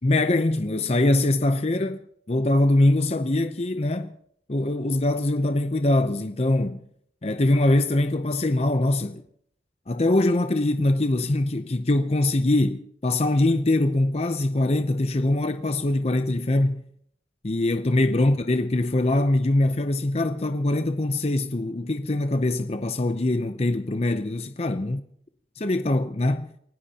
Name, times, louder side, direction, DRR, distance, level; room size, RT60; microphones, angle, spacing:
voice 1, 0.0-2.0 2.3-4.1 4.5-6.8 7.2-9.2 9.9-16.8 17.4-25.0 25.6-26.5, left 2 dB, 35° left, 0.6 m, -23 dB
28.5 x 16.5 x 2.9 m
head